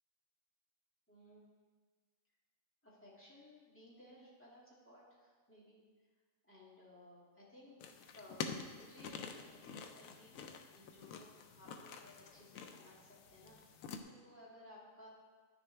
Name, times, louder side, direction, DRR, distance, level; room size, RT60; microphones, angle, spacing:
voice 1, 1.1-1.4 2.8-5.8 6.4-7.8 8.1-10.4 10.7-15.1, left 1 dB, 10° left, -7 dB, 2.1 m, -59 dB
sound 1, 7.8-14.0, left 6 dB, 85° left, 1.0 m, -48 dB
9.8 x 6.4 x 3.3 m, 1.5 s
omnidirectional pair, 1.4 m